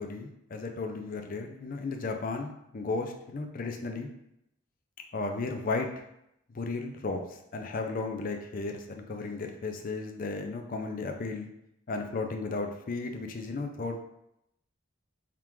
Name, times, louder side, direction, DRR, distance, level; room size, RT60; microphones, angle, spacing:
voice 1, 0.0-4.1 5.1-5.9 6.5-11.5 11.9-14.0, left 3 dB, 40° left, 4 dB, 0.4 m, -34 dB
3.6 x 2.4 x 4.5 m, 0.80 s
head